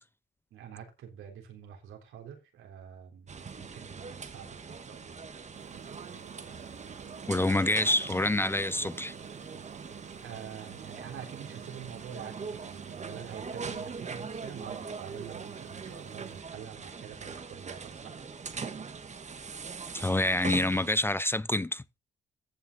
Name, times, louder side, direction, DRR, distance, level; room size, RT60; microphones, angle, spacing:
voice 1, 0.5-5.2 10.2-18.2, right 8 dB, 85° right, 3.7 m, -46 dB
sound 1, 3.3-20.9, right 5 dB, 35° right, 1.4 m, -42 dB
sound 2, 5.5-16.4, right 8 dB, 60° right, 1.6 m, -49 dB
voice 2, 7.3-9.1 19.9-21.8, left 1 dB, 10° left, 0.4 m, -27 dB
14.5 x 6.1 x 4.1 m
cardioid pair, 90°, 20 cm